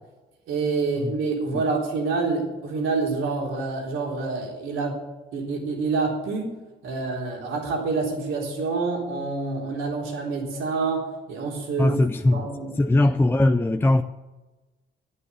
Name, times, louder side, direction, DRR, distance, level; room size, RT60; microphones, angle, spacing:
voice 1, 0.5-5.0 5.3-12.0 12.3-12.7 13.0-13.1, right 4 dB, 85° right, 3.8 m, -27 dB
voice 2, 11.8-12.5 12.8-14.0, left 2 dB, 10° left, 0.5 m, -20 dB
11.5 x 9.7 x 9.7 m
cardioid pair, 90°, 20 cm